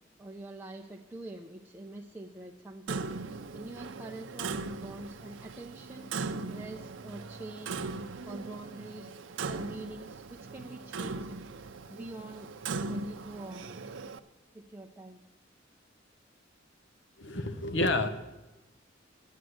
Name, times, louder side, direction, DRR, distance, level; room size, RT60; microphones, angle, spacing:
voice 1, 0.2-3.2 3.5-6.1 6.5-7.8 8.3-9.2 9.4-11.3 11.9-12.5 12.9-14.0 14.5-15.2, right 2 dB, 10° right, -1 dB, 0.7 m, -45 dB
Clock, 2.9-14.2, right 4 dB, 75° right, 0.6 m, -39 dB
voice 2, 17.2-18.1, left 2 dB, 65° left, 10 dB, 1.0 m, -29 dB
11.5 x 9.3 x 7.9 m, 1.1 s
head